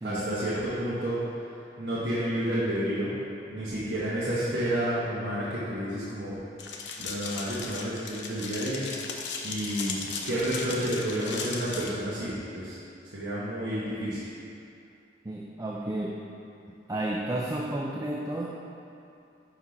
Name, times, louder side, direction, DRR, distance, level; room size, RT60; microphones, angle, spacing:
voice 1, 0.0-1.2 1.8-3.1 3.5-6.4 7.0-8.8 9.4-12.8 13.0-14.3, right 1 dB, 75° right, -10 dB, 1.0 m, -30 dB
sound 1, 6.6-11.9, left 5 dB, 80° left, 0.6 m, -37 dB
voice 2, 15.3-16.2 16.9-18.5, right 1 dB, 20° right, -2 dB, 0.3 m, -32 dB
5.5 x 4.6 x 4.8 m, 2.6 s
head